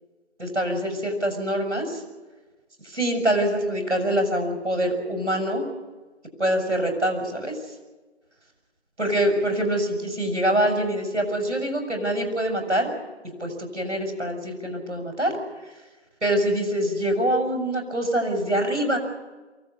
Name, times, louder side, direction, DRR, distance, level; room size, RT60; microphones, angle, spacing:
voice 1, 0.4-2.0 2.8-5.7 6.4-7.6 9.0-12.9 13.4-15.3 15.6-15.8 16.2-19.0, right 1 dB, 85° right, 3 dB, 6.6 m, -25 dB
24.0 x 17.0 x 8.1 m, 1.3 s
figure-of-eight pair, 155°, 34 cm